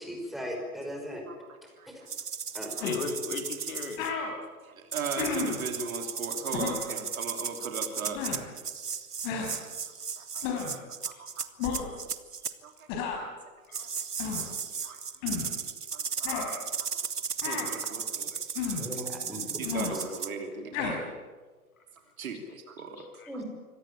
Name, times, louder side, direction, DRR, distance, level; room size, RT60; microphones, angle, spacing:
voice 1, 0.0-1.2 1.9-2.0 2.5-2.7 18.8-19.7 23.3-23.4, equal, ahead, 1 dB, 5.3 m, -38 dB
sound 1, 2.1-4.1 4.9-12.5 13.7-20.3, right 6 dB, 80° right, 1.4 m, -36 dB
voice 2, 2.8-4.0 11.1-11.2 13.7-13.8 14.8-15.0 17.6-17.8 18.3-18.4 23.0-23.3, left 4 dB, 60° left, 6 dB, 3.8 m, -37 dB
sound 2, 2.8-3.0 3.7-3.8 4.0-4.3 5.2-5.6 6.5-6.8 8.1-8.4 9.2-9.5 10.4-10.8 11.6-11.9 12.9-13.2 14.2-14.4 15.2-15.5 16.2-16.5 17.4-17.7 18.5-18.9 19.6-19.9 20.7-21.0, left 6 dB, 35° left, 5.4 m, -32 dB
voice 3, 4.7-8.2 10.2-10.4 11.0-11.4 11.8-11.9 12.6-12.7 13.0-13.3 13.7-13.9 14.8-15.0 15.9-16.6 17.4-18.3 19.6-21.1 22.2-23.1, right 4 dB, 60° right, 5 dB, 3.2 m, -38 dB
25.0 x 18.0 x 8.9 m, 1.4 s
figure-of-eight pair, 105°, 46 cm